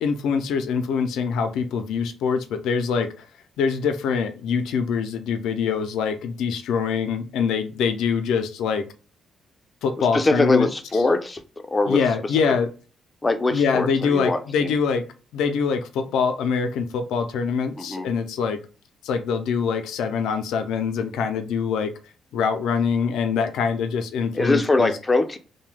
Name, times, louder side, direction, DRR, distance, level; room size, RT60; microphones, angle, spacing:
voice 1, 0.0-3.2 3.6-8.8 9.8-10.7 11.9-12.7 13.5-15.0 15.3-18.6 19.0-21.9 22.3-24.9, left 6 dB, 85° left, 7 dB, 0.5 m, -24 dB
voice 2, 10.0-11.4 11.7-12.0 13.2-14.7 17.8-18.1 24.3-25.4, left 2 dB, 20° left, 8 dB, 0.5 m, -22 dB
2.7 x 2.2 x 3.2 m, 0.35 s
cardioid pair, 90°, 0 cm